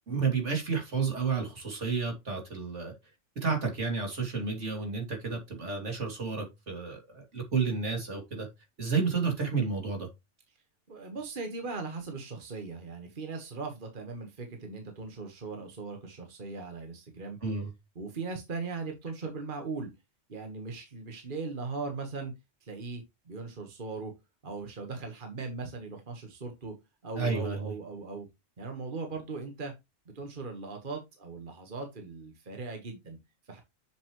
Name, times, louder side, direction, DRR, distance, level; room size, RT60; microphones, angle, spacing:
voice 1, 0.1-2.9 3.4-8.5 8.8-10.1 17.4-17.7 27.1-27.7, right 5 dB, 75° right, 3.1 m, -31 dB
voice 2, 10.9-17.4 18.0-19.9 20.3-22.3 22.6-24.1 24.4-26.7 27.0-28.3 28.6-29.7 30.2-33.2 33.5-33.6, right 4 dB, 45° right, 1.7 m, -39 dB
7.4 x 7.1 x 3.1 m
omnidirectional pair, 1.2 m